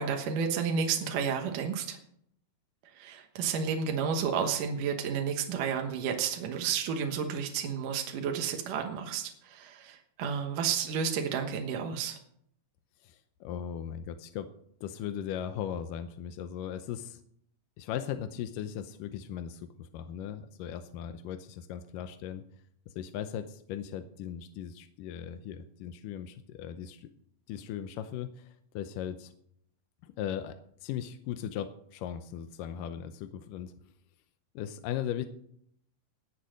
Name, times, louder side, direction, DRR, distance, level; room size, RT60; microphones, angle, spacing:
voice 1, 0.0-2.0 2.9-12.2, right 6 dB, 65° right, 3 dB, 2.6 m, -31 dB
voice 2, 13.0-14.5 14.8-17.2 17.8-22.4 22.9-27.1 27.5-29.3 30.0-33.7 34.6-35.3, left 9 dB, 75° left, 9 dB, 2.2 m, -38 dB
19.5 x 7.3 x 6.4 m, 0.70 s
omnidirectional pair, 4.3 m